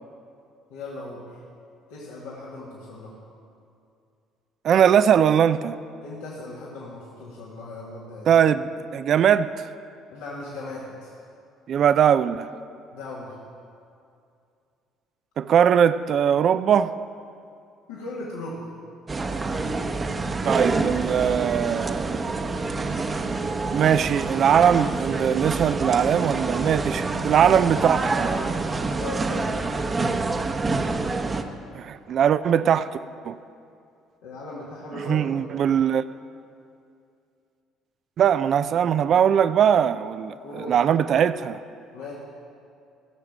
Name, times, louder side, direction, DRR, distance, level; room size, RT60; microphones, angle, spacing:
voice 1, 0.7-1.2 1.9-3.1 6.0-8.3 10.1-11.1 12.9-13.4 17.9-18.7 27.1-27.3 29.0-29.6 34.2-35.3 40.4-40.8 41.9-42.1, left 2 dB, 85° left, 2.1 m, -37 dB
voice 2, 4.6-5.8 8.3-9.5 11.7-12.5 15.4-16.9 20.4-22.2 23.7-28.3 31.7-32.9 33.2-33.3 34.9-36.0 38.2-41.6, right 8 dB, 55° right, 0.5 m, -20 dB
sound 1, 19.1-31.4, right 3 dB, 30° right, 1.0 m, -27 dB
16.0 x 6.6 x 7.3 m
supercardioid pair, 65°, 0 cm